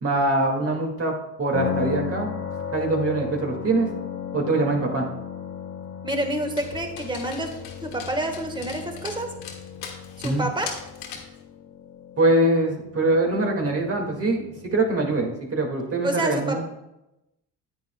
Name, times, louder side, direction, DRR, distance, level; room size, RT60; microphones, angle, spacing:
voice 1, 0.0-2.3 2.7-3.9 4.3-5.1 10.2-10.4 12.2-16.6, right 2 dB, 40° right, 1 dB, 2.1 m, -23 dB
sound 1, 1.5-15.4, left 7 dB, 65° left, 0.9 m, -36 dB
voice 2, 6.0-7.5 7.8-9.3 10.2-10.7 16.0-16.6, right 1 dB, 15° right, 4 dB, 1.4 m, -28 dB
Dog, 6.6-11.4, left 6 dB, 90° left, 1.6 m, -40 dB
9.3 x 9.2 x 2.3 m, 0.92 s
cardioid pair, 85°, 35 cm